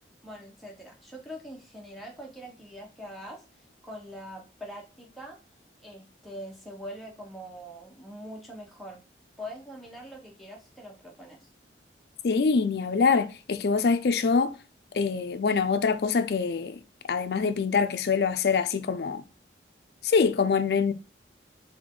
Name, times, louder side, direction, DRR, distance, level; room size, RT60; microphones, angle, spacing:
voice 1, 0.2-3.4 3.8-5.4 5.8-9.0 9.4-11.5, equal, ahead, 1.0 m, -43 dB
voice 2, 12.2-14.5 14.9-16.8 17.1-19.2 20.0-20.9, left 5 dB, 60° left, 0.4 m, -24 dB
3.5 x 3.4 x 3.7 m
head